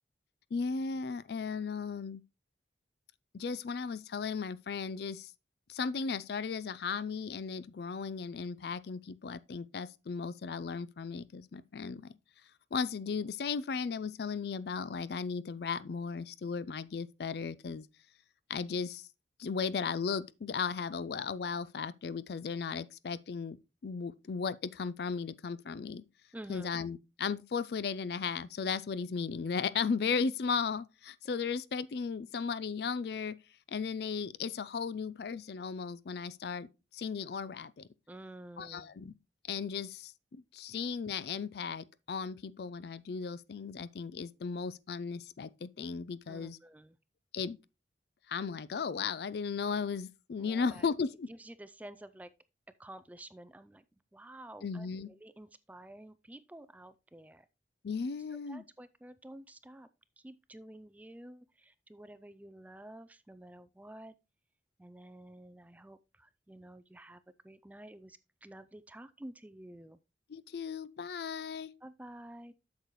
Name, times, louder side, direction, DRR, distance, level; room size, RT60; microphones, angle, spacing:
voice 1, 0.5-2.2 3.3-5.3 5.7-12.1 12.7-17.9 18.5-19.0 19.4-23.6 23.8-26.0 26.5-33.4 33.7-36.7 36.9-37.9 38.6-39.1 39.5-46.6 47.3-47.6 48.3-51.3 54.6-55.1 57.8-58.6 70.3-71.7, left 5 dB, 60° left, 0.4 m, -36 dB
voice 2, 26.3-26.8 38.1-38.9 46.3-47.0 50.4-50.9 51.3-52.3 52.8-53.8 54.1-57.5 58.5-59.9 60.2-64.1 64.8-70.0 71.8-72.5, right 1 dB, 10° right, 0.3 m, -50 dB
8.2 x 6.7 x 3.0 m
head